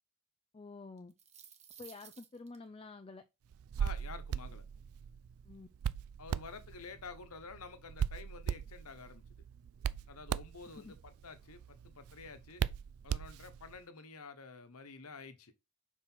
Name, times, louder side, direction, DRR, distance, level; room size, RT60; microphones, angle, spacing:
voice 1, 0.5-1.1 1.8-3.2 5.5-5.7 10.8-10.9, left 3 dB, 25° left, 0.5 m, -49 dB
sound 1, 1.0-2.6, right 8 dB, 30° right, 1.0 m, -55 dB
Hands, 3.5-13.8, right 8 dB, 65° right, 0.3 m, -39 dB
voice 2, 3.8-4.6 6.2-9.4 10.1-12.6 13.0-15.5, left 4 dB, 80° left, 1.1 m, -50 dB
5.7 x 4.6 x 4.5 m
head